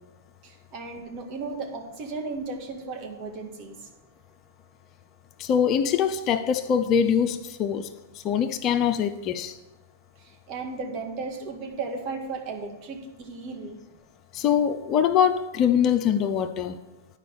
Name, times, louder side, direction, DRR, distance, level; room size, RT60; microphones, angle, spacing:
voice 1, 0.4-3.8 10.2-13.8, right 4 dB, 45° right, 2.0 m, -35 dB
voice 2, 5.4-7.9 8.2-9.5 14.3-16.8, left 8 dB, 35° left, 0.7 m, -23 dB
10.5 x 5.1 x 6.6 m
hypercardioid pair, 110°, 0 cm